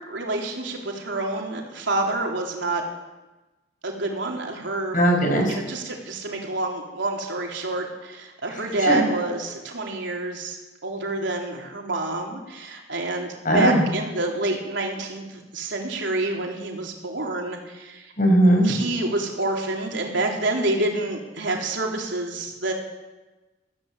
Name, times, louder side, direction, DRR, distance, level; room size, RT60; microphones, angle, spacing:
voice 1, 0.1-2.8 3.8-5.0 5.5-10.6 10.8-15.2 15.5-18.0 18.6-22.7, right 2 dB, 70° right, 0 dB, 3.9 m, -27 dB
voice 2, 4.9-5.6 8.5-9.0 13.4-13.8 18.2-18.7, right 1 dB, 45° left, 2 dB, 6.2 m, -19 dB
22.0 x 15.0 x 8.3 m, 1.1 s
head